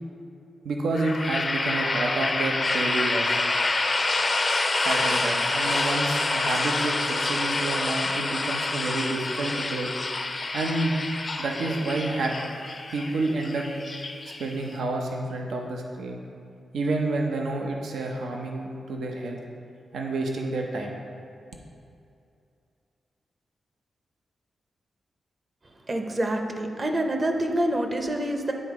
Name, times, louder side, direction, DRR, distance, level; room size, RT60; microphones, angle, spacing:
voice 1, 0.6-3.4 4.8-9.9 10.5-11.1 11.4-12.3 12.9-13.7 14.4-16.2 16.7-19.4 19.9-21.0, right 2 dB, 85° right, 1 dB, 0.8 m, -29 dB
sound 1, 0.9-14.8, left 2 dB, 30° left, 0.5 m, -27 dB
voice 2, 25.9-28.5, right 1 dB, 30° right, 4 dB, 0.7 m, -26 dB
9.9 x 4.0 x 4.8 m, 2.5 s
wide cardioid pair, 120°, 0 cm